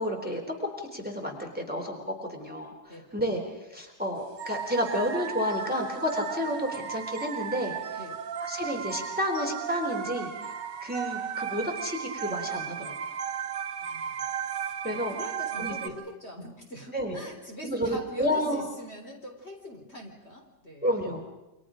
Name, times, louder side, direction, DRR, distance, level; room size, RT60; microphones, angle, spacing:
voice 1, 0.0-3.4 3.7-7.8 8.4-10.3 10.8-13.2 14.8-15.1 15.6-15.9 16.9-17.2 17.6-18.6 20.8-21.2, equal, 5° right, 2 dB, 3.7 m, -31 dB
sound 1, 4.4-15.9, right 8 dB, 85° right, 1.8 m, -35 dB
voice 2, 13.8-21.2, equal, 35° left, 1 dB, 4.3 m, -43 dB
29.5 x 26.0 x 5.1 m, 0.97 s
omnidirectional pair, 1.9 m